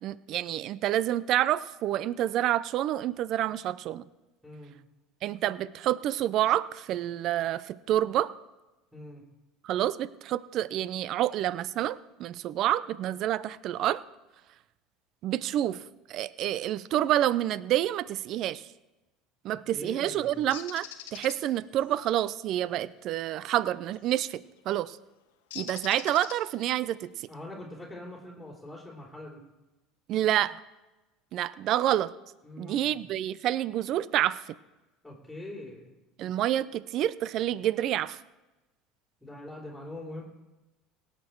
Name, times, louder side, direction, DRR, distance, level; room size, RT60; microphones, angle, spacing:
voice 1, 0.0-4.0 5.2-8.3 9.6-14.0 15.2-15.8 16.1-18.6 19.4-20.9 21.1-24.4 24.7-25.0 25.5-27.3 30.1-30.6 31.3-32.1 32.6-34.5 36.2-38.2, right 12 dB, 55° right, 19 dB, 0.5 m, -28 dB
voice 2, 4.4-4.8 8.9-9.2 19.5-20.4 27.3-29.4 32.4-33.0 35.0-35.9 39.2-40.2, left 1 dB, ahead, -6 dB, 3.5 m, -43 dB
Bird, 20.5-21.4 24.0-24.2 25.5-26.7, left 10 dB, 85° left, 1.1 m, -42 dB
18.0 x 6.7 x 4.6 m, 1.0 s
hypercardioid pair, 85°, 0 cm